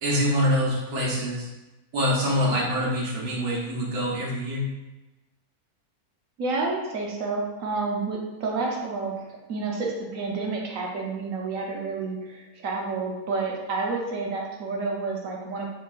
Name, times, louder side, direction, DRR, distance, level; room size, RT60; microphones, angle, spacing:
voice 1, 0.0-1.5 1.9-4.7, equal, 85° right, -5 dB, 1.4 m, -25 dB
voice 2, 6.4-15.7, right 3 dB, 65° right, -1 dB, 1.1 m, -30 dB
4.5 x 4.0 x 2.4 m, 1.1 s
omnidirectional pair, 1.6 m